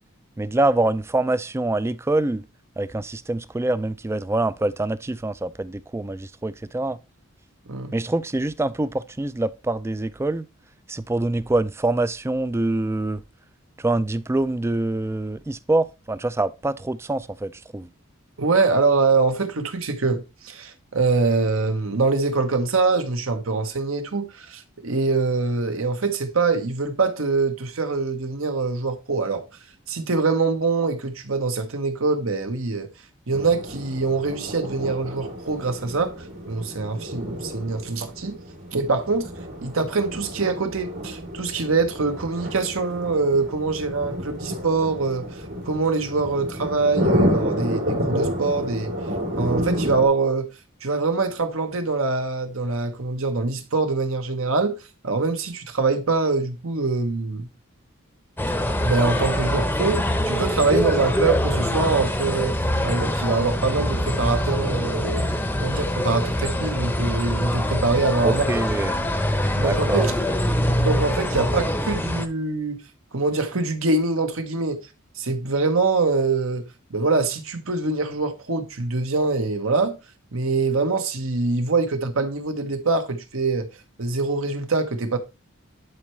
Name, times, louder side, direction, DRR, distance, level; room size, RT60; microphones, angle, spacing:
voice 1, 0.4-2.4 2.8-7.0 7.9-10.5 10.9-13.2 13.8-17.9 68.2-69.0 69.6-70.1, right 2 dB, 15° right, 0.3 m, -25 dB
voice 2, 18.4-29.5 29.9-32.9 33.3-38.4 38.7-39.3 39.6-48.9 49.4-50.5 50.8-54.8 55.0-57.5 58.8-62.5 62.8-65.2 65.6-68.4 68.8-68.9 69.5-70.1 70.8-72.8 73.1-74.8 75.2-76.6 76.9-80.0 80.3-83.7 84.0-85.2, right 3 dB, 75° right, 1.1 m, -24 dB
sound 1, 33.3-50.1, equal, 60° right, 3.3 m, -30 dB
sound 2, 58.4-72.3, left 1 dB, 10° left, 0.7 m, -24 dB
11.0 x 4.6 x 3.1 m
head